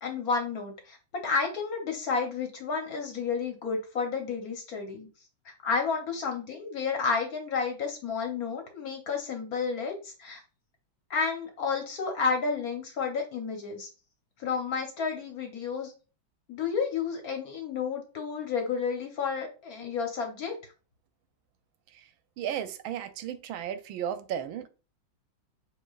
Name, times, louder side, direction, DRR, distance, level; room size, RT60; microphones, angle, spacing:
voice 1, 0.0-1.0 1.2-5.1 5.4-10.4 11.1-13.9 14.4-15.9 16.5-20.5, left 5 dB, 55° left, 1.2 m, -31 dB
voice 2, 22.4-24.7, right 9 dB, 90° right, 1.4 m, -34 dB
7.5 x 2.9 x 2.3 m
omnidirectional pair, 2.1 m